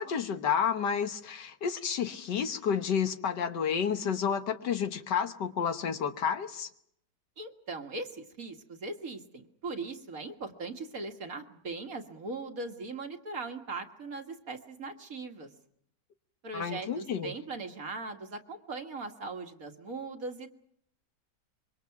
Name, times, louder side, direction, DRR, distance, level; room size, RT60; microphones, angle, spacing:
voice 1, 0.0-6.7 16.5-17.3, left 7 dB, 75° left, 8 dB, 1.8 m, -30 dB
voice 2, 7.4-15.5 16.4-20.5, right 3 dB, 50° right, 5 dB, 2.0 m, -39 dB
26.0 x 24.0 x 5.8 m, 0.70 s
omnidirectional pair, 1.9 m